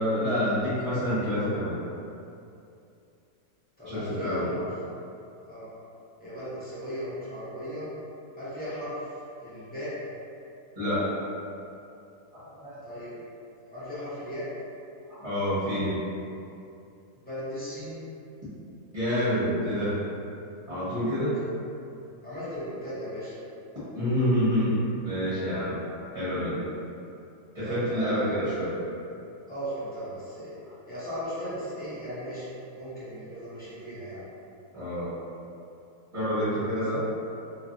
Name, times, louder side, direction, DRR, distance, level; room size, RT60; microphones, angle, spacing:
voice 1, 0.0-1.8 3.8-4.5 10.7-11.1 12.4-12.8 15.1-16.0 18.9-20.0 20.7-21.4 23.9-24.8 25.0-25.7 26.1-26.6 27.5-28.7 34.7-35.1 36.1-37.0, equal, 30° right, -14 dB, 0.9 m, -27 dB
voice 2, 3.8-4.7 5.4-5.7 6.2-7.9 8.3-10.2 12.8-13.2 13.7-14.5 17.2-18.0 22.2-23.3 27.6-28.2 29.5-30.6 30.9-32.5 32.7-34.3, equal, 10° left, -12 dB, 0.5 m, -37 dB
3.2 x 2.3 x 2.6 m, 2.6 s
omnidirectional pair, 1.7 m